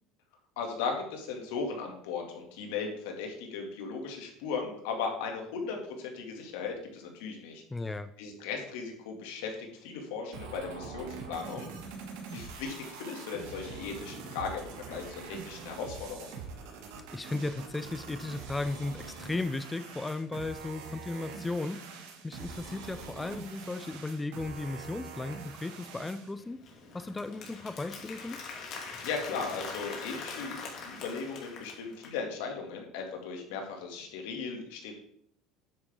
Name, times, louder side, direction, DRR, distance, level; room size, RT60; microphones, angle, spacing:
voice 1, 0.6-7.6 8.2-11.7 12.3-16.3 29.0-34.9, left 5 dB, 85° left, 2 dB, 2.6 m, -37 dB
voice 2, 7.7-8.1 17.1-21.8 22.2-26.6 26.9-28.4, left 2 dB, 10° left, 11 dB, 0.4 m, -35 dB
sound 1, 10.3-26.3, right 4 dB, 90° right, 2.4 m, -44 dB
Applause, 26.4-32.2, left 4 dB, 50° left, 2.7 m, -43 dB
9.6 x 8.6 x 3.8 m, 0.67 s
cardioid pair, 140°, 0 cm